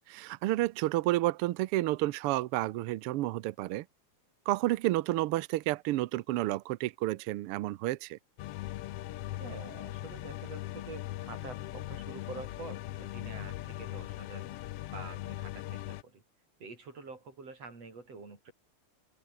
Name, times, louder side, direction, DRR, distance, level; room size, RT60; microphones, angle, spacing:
voice 1, 0.1-3.8 4.5-8.2, right 16 dB, 80° right, 1.2 m, -30 dB
sound 1, 8.4-16.0, left 15 dB, 75° left, 1.4 m, -40 dB
voice 2, 9.4-16.2 16.6-18.5, right 4 dB, 55° right, 6.8 m, -47 dB
open air
omnidirectional pair, 3.3 m